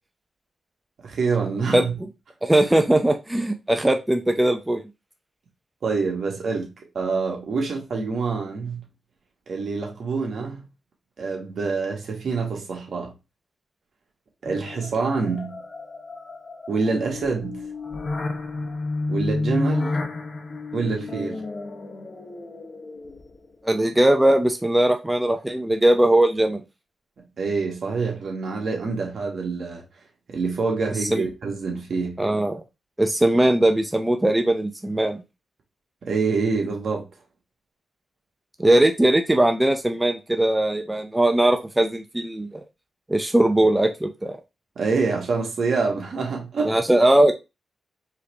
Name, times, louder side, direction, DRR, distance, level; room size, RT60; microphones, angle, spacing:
voice 1, 1.0-2.0 5.8-6.7 6.9-8.9 9.5-10.7 11.2-13.1 14.4-15.6 16.7-17.7 19.1-20.0 20.7-21.4 27.4-29.8 30.3-32.3 36.0-37.1 44.7-46.8, right 4 dB, 65° right, 1.6 m, -26 dB
voice 2, 2.4-4.8 23.6-26.6 31.0-31.2 32.2-32.6 33.0-35.2 38.6-42.6 43.1-44.4 46.6-47.3, right 1 dB, 10° right, 0.6 m, -20 dB
sound 1, 14.5-23.5, left 3 dB, 45° left, 0.9 m, -31 dB
4.7 x 3.1 x 3.4 m
cardioid pair, 75°, 0 cm